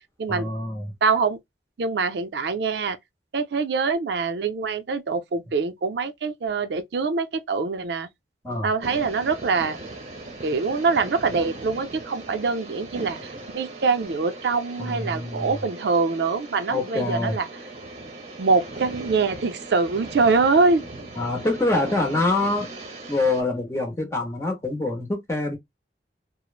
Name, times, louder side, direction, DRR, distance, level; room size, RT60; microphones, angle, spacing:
voice 1, 0.3-0.9 8.4-8.7 14.8-15.5 16.7-17.4 21.2-22.7 23.1-25.6, left 2 dB, 15° left, 0.8 m, -25 dB
voice 2, 1.0-1.4 1.8-3.0 3.3-8.1 8.6-9.8 10.4-17.5 18.4-20.8, right 4 dB, 70° right, 0.4 m, -24 dB
sound 1, 8.8-23.4, right 2 dB, 40° right, 0.8 m, -39 dB
3.0 x 2.0 x 2.3 m
head